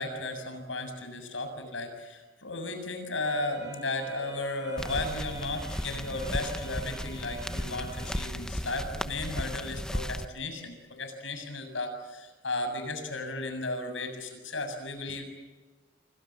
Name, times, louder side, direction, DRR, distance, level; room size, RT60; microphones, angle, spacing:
voice 1, 0.0-15.2, left 2 dB, 85° left, 7 dB, 7.4 m, -35 dB
sound 1, 3.2-8.2, right 2 dB, 20° right, 5.8 m, -49 dB
sound 2, 4.8-10.3, equal, 5° left, 1.1 m, -35 dB
29.0 x 25.0 x 7.4 m, 1.2 s
head